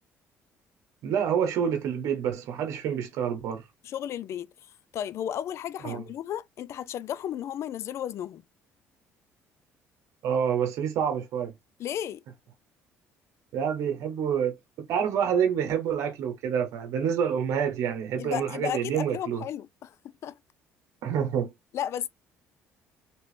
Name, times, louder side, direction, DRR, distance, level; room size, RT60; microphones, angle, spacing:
voice 1, 1.0-3.6 5.8-6.0 10.2-11.5 13.5-19.4 21.0-21.5, right 8 dB, 70° right, 0.9 m, -27 dB
voice 2, 3.8-4.5 4.9-8.4 11.8-12.2 18.2-20.4 21.7-22.1, left 10 dB, 60° left, 0.4 m, -34 dB
3.0 x 3.0 x 3.1 m
supercardioid pair, 85°, 5 cm